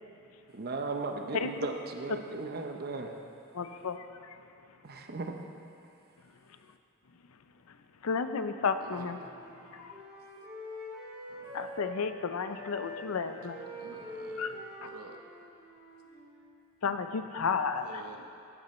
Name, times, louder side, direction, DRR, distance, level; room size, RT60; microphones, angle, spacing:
voice 1, 0.5-3.1 4.8-5.3, right 3 dB, 45° right, 4 dB, 0.7 m, -36 dB
voice 2, 3.5-4.4 7.7-7.8 8.0-9.2 9.7-10.0 11.5-13.7 14.4-14.5 16.8-18.0, left 5 dB, 70° left, 9 dB, 0.5 m, -32 dB
Wind instrument woodwind instrument, 8.4-12.2 12.5-16.6, left 1 dB, 10° right, 2.2 m, -45 dB
voice 3, 8.8-9.3 13.8-15.2 17.7-18.3, right 3 dB, 80° right, 2 dB, 0.9 m, -48 dB
14.5 x 6.8 x 4.3 m, 2.6 s
head